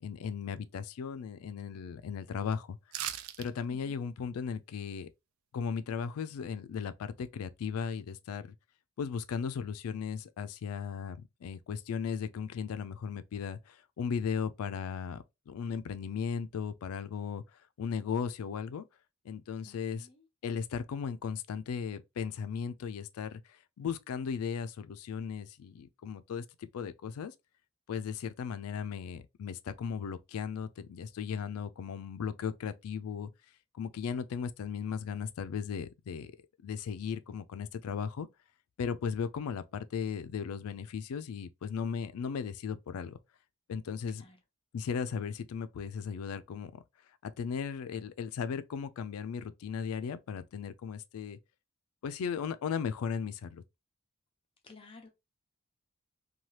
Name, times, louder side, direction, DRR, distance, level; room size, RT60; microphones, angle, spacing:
voice 1, 0.0-2.8 3.4-5.1 5.5-8.5 9.0-17.4 17.8-18.8 19.3-20.1 20.4-23.4 23.8-27.3 27.9-33.3 33.7-36.3 36.6-38.3 38.8-43.2 43.7-44.2 44.7-46.8 47.2-51.4 52.0-53.6, left 6 dB, 80° left, 0.3 m, -36 dB
sound 1, 2.9-3.5 3.8-3.9, right 11 dB, 75° right, 0.3 m, -37 dB
voice 2, 19.6-20.2 44.2-44.4 54.6-55.1, left 3 dB, 25° left, 0.6 m, -54 dB
2.8 x 2.3 x 3.1 m
head